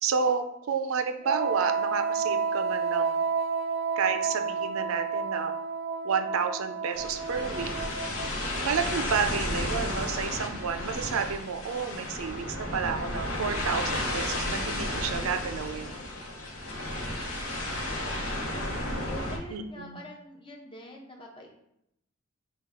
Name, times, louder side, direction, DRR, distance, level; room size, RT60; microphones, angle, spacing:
voice 1, 0.0-3.2 4.0-5.5 6.0-7.7 8.6-16.0 19.5-20.0, right 6 dB, 80° right, 7 dB, 0.4 m, -30 dB
Wind instrument woodwind instrument, 1.2-8.6, right 5 dB, 30° right, 0.6 m, -30 dB
sound 1, 6.9-19.4, left 1 dB, 80° left, 0.9 m, -33 dB
voice 2, 8.7-9.2 18.0-18.7 19.0-21.5, left 1 dB, 25° left, 0 dB, 0.7 m, -46 dB
5.7 x 2.3 x 3.6 m, 0.79 s
head